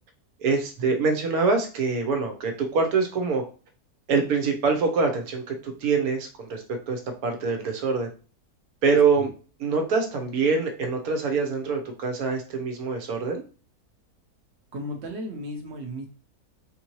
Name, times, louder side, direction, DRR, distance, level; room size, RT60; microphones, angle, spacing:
voice 1, 0.4-3.4 4.1-8.1 8.8-9.3 9.6-13.4, right 4 dB, 70° right, 4 dB, 1.2 m, -25 dB
voice 2, 14.7-16.1, equal, 50° right, 3 dB, 1.0 m, -35 dB
4.5 x 2.7 x 3.0 m, 0.37 s
omnidirectional pair, 1.7 m